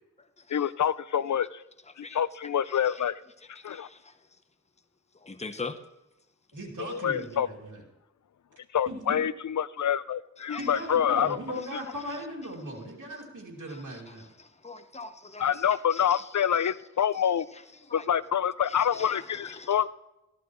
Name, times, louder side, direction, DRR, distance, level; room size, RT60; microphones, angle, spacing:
voice 1, 0.5-1.6 2.0-3.2 3.6-3.9 6.9-7.5 8.7-11.4 15.4-17.5 17.9-19.9, left 9 dB, 70° left, 0.5 m, -26 dB
voice 2, 3.7-4.1 5.2-5.8 10.5-10.6 14.4-15.4 15.9-16.2 17.9-18.0 18.9-19.7, left 4 dB, 20° left, 0.8 m, -41 dB
voice 3, 6.5-7.8 8.9-9.2 10.6-14.3, right 1 dB, 85° right, 2.6 m, -38 dB
14.5 x 11.5 x 3.1 m
wide cardioid pair, 55°, 31 cm